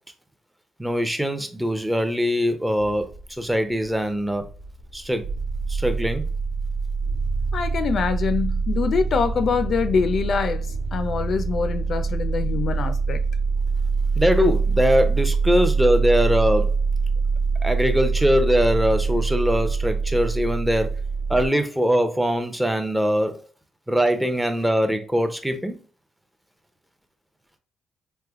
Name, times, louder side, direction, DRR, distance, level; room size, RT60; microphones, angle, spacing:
voice 1, 0.8-4.4 4.9-5.3 5.7-6.2 14.2-16.7 17.6-20.9 21.3-23.4 23.9-25.8, equal, 5° right, 0.6 m, -22 dB
sound 1, 3.0-21.5, right 4 dB, 85° right, 0.6 m, -24 dB
voice 2, 7.5-13.2, left 5 dB, 55° left, 0.4 m, -24 dB
3.2 x 2.1 x 3.5 m
cardioid pair, 90°, 0 cm